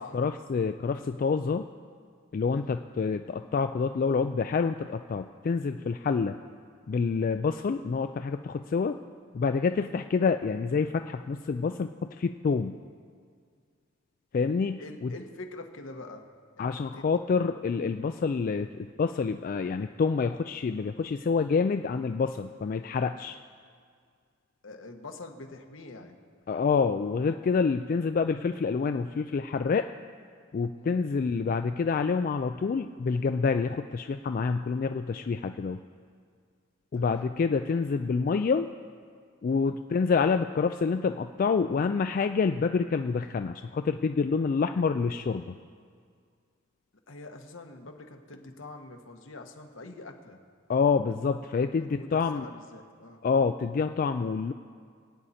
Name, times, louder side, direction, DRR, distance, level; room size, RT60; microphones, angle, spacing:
voice 1, 0.1-1.6 2.3-6.4 6.9-9.0 9.3-12.8 14.3-15.1 16.6-23.4 26.5-29.9 30.5-35.8 36.9-38.7 39.4-45.6 50.7-52.4 53.2-54.5, left 5 dB, 45° left, 8 dB, 0.3 m, -27 dB
voice 2, 14.8-16.2 16.6-17.1 24.6-26.2 30.8-31.0 36.9-37.2 39.6-39.8 47.1-50.4 51.8-53.2, left 2 dB, 75° left, 4 dB, 1.3 m, -45 dB
22.5 x 8.9 x 4.3 m, 2.1 s
head